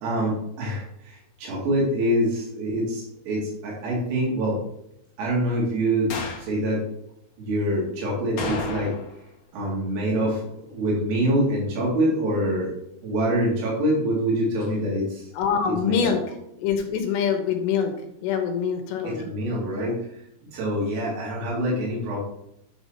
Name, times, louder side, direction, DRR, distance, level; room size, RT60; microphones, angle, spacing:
voice 1, 0.0-4.6 5.2-6.1 6.4-6.8 7.4-9.0 9.5-12.7 13.0-15.3 15.7-16.1 19.0-22.2, right 1 dB, 80° right, -4 dB, 5.4 m, -25 dB
sound 1, 6.1-6.5 8.4-9.2 9.5-9.6 14.6-14.7, left 3 dB, 60° left, 1.7 m, -32 dB
voice 2, 15.4-16.2 16.6-17.9 18.2-19.3, left 7 dB, 80° left, 4 dB, 3.7 m, -24 dB
11.0 x 7.8 x 3.0 m, 0.77 s
omnidirectional pair, 5.9 m